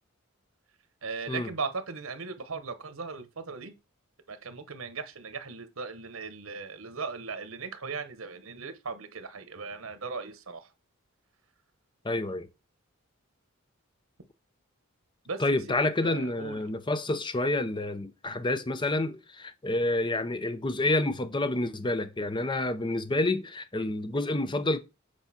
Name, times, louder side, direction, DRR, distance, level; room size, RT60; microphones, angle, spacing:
voice 1, 1.0-3.7 4.3-10.7 15.2-16.6, right 4 dB, 85° right, 1.1 m, -38 dB
voice 2, 12.0-12.5 15.4-24.8, left 2 dB, 25° left, 0.6 m, -28 dB
8.1 x 4.9 x 4.3 m
head